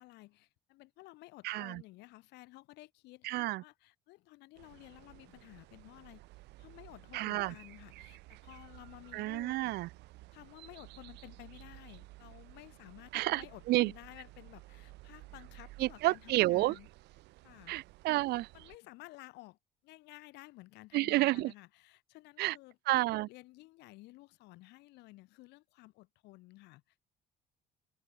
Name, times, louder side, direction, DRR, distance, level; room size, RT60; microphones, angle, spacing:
voice 1, 0.0-6.2 6.6-9.8 10.3-16.9 17.4-17.7 18.5-19.6 19.8-22.8 23.1-27.0, left 20 dB, 90° left, 2.4 m, -54 dB
voice 2, 1.4-1.8 3.2-3.6 7.1-7.5 9.1-9.9 13.1-13.4 13.7-13.9 15.8-16.8 17.7-18.5 20.9-21.5 22.4-22.6 22.9-23.3, right 18 dB, 75° right, 0.4 m, -30 dB
sound 1, 4.5-18.8, right 20 dB, 90° right, 6.1 m, -55 dB
cardioid pair, 110°, 17 cm